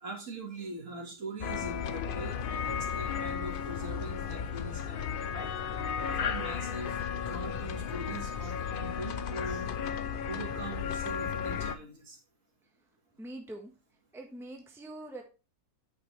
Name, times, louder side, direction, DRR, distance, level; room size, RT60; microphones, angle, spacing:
voice 1, 0.0-2.4 2.7-5.5 6.1-6.9 7.3-9.7 10.3-12.2, right 2 dB, 55° right, 2 dB, 2.2 m, -42 dB
sound 1, 1.4-11.8, left 7 dB, 60° left, 0.6 m, -34 dB
voice 2, 13.2-13.7 14.1-15.2, right 1 dB, ahead, 2 dB, 1.2 m, -43 dB
9.6 x 5.9 x 3.3 m, 0.31 s
omnidirectional pair, 1.6 m